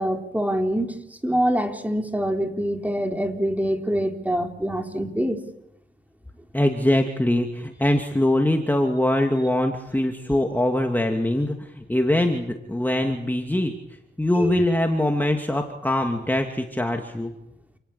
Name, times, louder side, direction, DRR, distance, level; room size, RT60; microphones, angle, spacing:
voice 1, 0.0-5.4 14.4-14.5, equal, 10° right, 4 dB, 3.9 m, -25 dB
voice 2, 6.5-13.7 14.2-17.3, left 1 dB, 10° left, 3 dB, 2.7 m, -23 dB
29.5 x 19.0 x 8.6 m, 0.78 s
cardioid pair, 80°, 20 cm